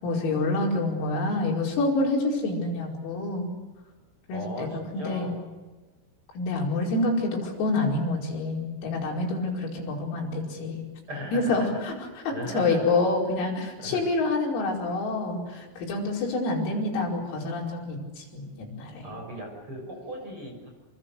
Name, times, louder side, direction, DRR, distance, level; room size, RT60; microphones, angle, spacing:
voice 1, 0.0-3.5 4.3-4.7 4.9-5.3 6.4-10.8 11.3-12.0 12.3-19.1, left 2 dB, 90° left, -2 dB, 7.7 m, -27 dB
voice 2, 4.3-5.3 11.1-11.8 12.3-12.9 13.8-14.0 19.0-20.7, equal, 25° right, 2 dB, 6.9 m, -37 dB
28.0 x 26.5 x 6.8 m, 1.3 s
omnidirectional pair, 6.0 m